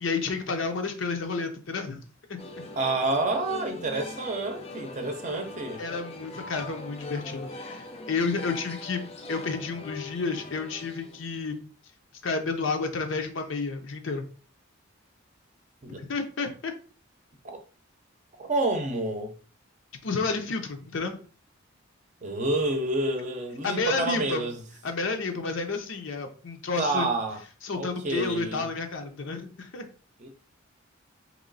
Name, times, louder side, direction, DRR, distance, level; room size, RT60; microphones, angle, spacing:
voice 1, 0.0-2.0 2.3-2.4 5.8-9.0 9.3-11.6 12.2-14.2 15.9-16.7 20.0-21.2 23.6-24.5 24.8-27.1 27.6-29.8, left 4 dB, 65° left, 0.6 m, -30 dB
sound 1, 2.4-11.5, left 2 dB, 30° left, 0.5 m, -41 dB
voice 2, 2.8-5.8 15.8-16.0 17.4-17.6 18.4-19.3 22.2-24.5 26.8-27.4 27.7-28.6 30.2-30.3, right 2 dB, 35° right, 0.6 m, -29 dB
3.0 x 3.0 x 3.9 m
head